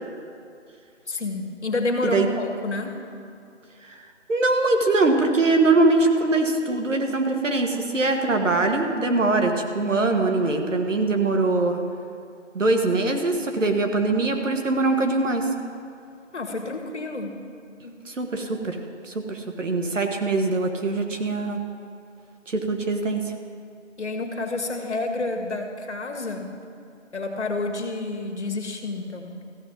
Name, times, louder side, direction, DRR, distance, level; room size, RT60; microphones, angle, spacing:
voice 1, 1.1-2.9 16.3-17.4 17.8-18.0 24.0-26.5 27.1-29.3, left 2 dB, 65° left, 3 dB, 1.7 m, -29 dB
voice 2, 4.3-11.8 12.5-15.5 18.1-18.8 19.0-21.6 22.5-23.3, right 3 dB, 85° right, 4 dB, 1.7 m, -22 dB
14.5 x 7.5 x 5.4 m, 2.5 s
figure-of-eight pair, 180°, 37 cm